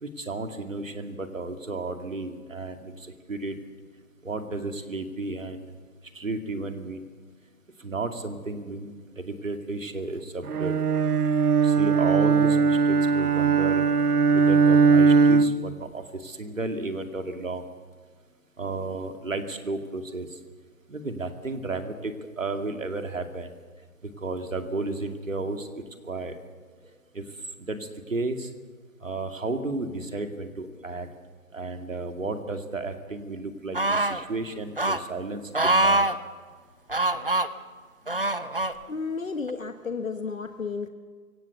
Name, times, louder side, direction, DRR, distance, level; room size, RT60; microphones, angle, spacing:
voice 1, 0.0-3.6 4.2-5.7 6.1-7.1 7.8-10.7 11.6-13.8 14.3-17.7 18.6-20.4 20.9-23.5 24.0-25.7 26.0-26.4 27.1-27.2 27.6-28.5 29.0-31.1 31.5-36.1, right 3 dB, 60° right, 6 dB, 2.4 m, -33 dB
Bowed string instrument, 10.5-15.8, right 5 dB, 80° right, 0.8 m, -20 dB
sound 1, 33.7-34.2 34.8-35.0 35.5-36.2 36.9-37.5 38.1-38.7 39.5-39.6, right 2 dB, 40° right, 0.7 m, -24 dB
voice 2, 38.9-40.9, left 4 dB, 60° left, 8 dB, 1.4 m, -32 dB
23.5 x 17.0 x 8.2 m, 1.5 s
figure-of-eight pair, 175°, 44 cm